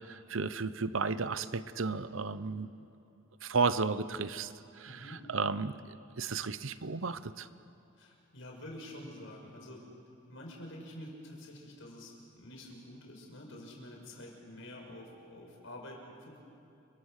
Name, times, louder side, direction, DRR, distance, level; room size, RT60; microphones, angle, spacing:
voice 1, 0.0-2.7 3.4-7.5, right 4 dB, 70° right, 14 dB, 0.8 m, -34 dB
voice 2, 4.9-5.2 8.0-9.8 10.3-16.4, left 1 dB, 70° left, 0 dB, 6.1 m, -48 dB
30.0 x 24.0 x 6.6 m, 2.8 s
head